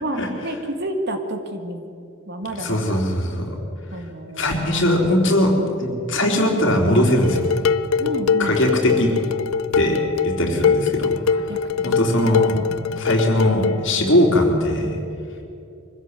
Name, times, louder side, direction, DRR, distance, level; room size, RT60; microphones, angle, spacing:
voice 1, 0.0-1.9 2.3-3.0 3.9-4.8 8.0-8.6 11.3-11.6 12.9-13.0, right 1 dB, 50° right, 6 dB, 2.0 m, -30 dB
voice 2, 2.6-3.6 4.4-5.5 5.8-7.5 8.4-9.1 9.8-11.1 11.8-12.6 13.0-15.0, left 1 dB, 60° left, 1 dB, 3.6 m, -20 dB
Dishes pots and pans, 7.2-13.8, left 6 dB, 80° left, 0.5 m, -22 dB
23.5 x 15.5 x 8.2 m, 2.6 s
head